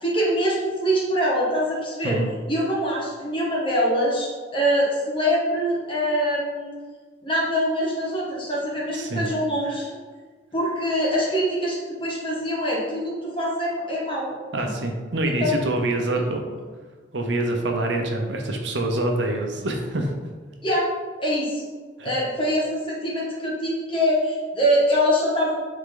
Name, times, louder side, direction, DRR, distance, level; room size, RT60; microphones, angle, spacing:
voice 1, 0.0-2.2 2.5-6.7 7.2-10.0 10.5-14.4 14.6-14.7 15.4-15.5 20.6-20.9 21.2-21.7 22.0-25.5, equal, 30° left, -5 dB, 1.8 m, -24 dB
voice 2, 8.9-9.3 14.5-16.4 17.1-20.1 22.0-22.1, right 2 dB, 70° right, 2 dB, 0.9 m, -25 dB
8.2 x 3.9 x 4.0 m, 1.5 s
head